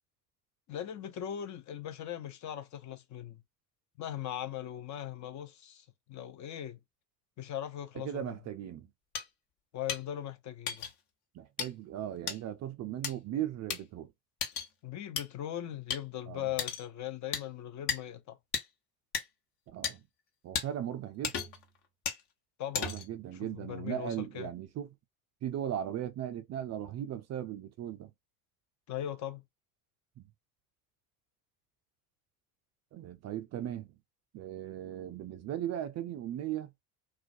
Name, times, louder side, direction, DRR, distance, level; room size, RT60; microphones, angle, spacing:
voice 1, 0.7-3.4 4.0-6.8 7.4-8.3 9.7-10.9 14.8-18.4 22.6-23.0 23.4-24.5 28.9-29.4, left 11 dB, 40° left, 0.5 m, -39 dB
voice 2, 7.9-8.9 11.3-14.1 16.3-16.5 19.7-20.0 20.4-21.4 22.8-24.9 25.4-28.1 30.2-30.3 32.9-33.9 34.3-36.7, right 11 dB, 35° right, 0.4 m, -37 dB
sound 1, 9.1-9.2 9.9-10.0 10.7-10.9 11.6-11.7 12.3-12.4 13.0-13.1 13.7-13.8 14.4-14.7 15.2-15.3 15.9-16.0 16.6-16.8 17.3-17.4 17.9-18.0 18.5-18.6 19.1-19.2 19.8-19.9 20.5-20.7 21.2-21.6 22.1-22.2 22.7-23.1, left 7 dB, 55° left, 1.0 m, -34 dB
2.3 x 2.1 x 2.5 m
hypercardioid pair, 65°, 48 cm